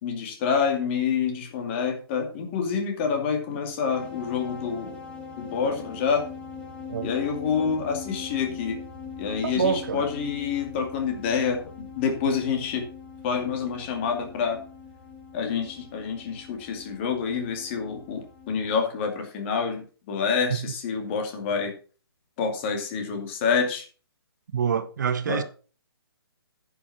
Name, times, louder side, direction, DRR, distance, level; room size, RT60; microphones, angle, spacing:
voice 1, 0.0-5.0 5.4-6.2 7.0-8.8 9.2-11.6 12.0-12.9 13.2-14.6 15.3-21.7 22.4-23.8 25.3-25.4, left 6 dB, 30° left, 2.3 m, -27 dB
sound 1, 3.9-18.8, left 5 dB, 10° left, 1.8 m, -42 dB
voice 2, 9.4-10.1 20.5-20.6 24.5-25.4, right 7 dB, 45° right, 0.8 m, -26 dB
9.9 x 5.9 x 6.0 m
figure-of-eight pair, 135°, 13 cm